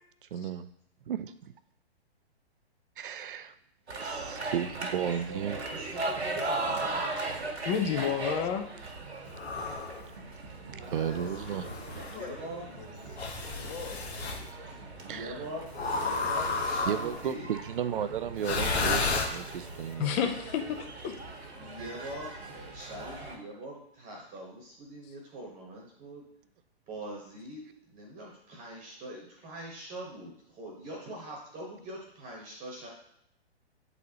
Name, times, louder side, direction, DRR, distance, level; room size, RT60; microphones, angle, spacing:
voice 1, 0.3-0.7 1.1-1.5 3.0-3.5 4.0-5.6 5.9-6.0 10.7-11.6 15.1-15.4 16.8-20.3, right 9 dB, 55° right, 12 dB, 0.5 m, -34 dB
sound 1, 3.9-23.4, right 3 dB, 80° right, 1.3 m, -39 dB
voice 2, 5.0-7.1 10.6-12.6 14.9-17.5 21.4-26.2 26.9-32.9, right 1 dB, 25° right, -1 dB, 1.1 m, -43 dB
voice 3, 7.6-8.7 20.0-21.2, left 8 dB, 20° left, 6 dB, 0.4 m, -30 dB
sound 2, 9.3-10.0 11.0-12.2 13.2-14.4 15.7-17.3 18.4-19.8, left 3 dB, 75° left, 1.0 m, -32 dB
voice 4, 12.6-13.2 13.5-14.9, left 5 dB, 55° left, 3 dB, 1.2 m, -45 dB
8.1 x 4.1 x 2.8 m, 0.77 s
figure-of-eight pair, 120°, 32 cm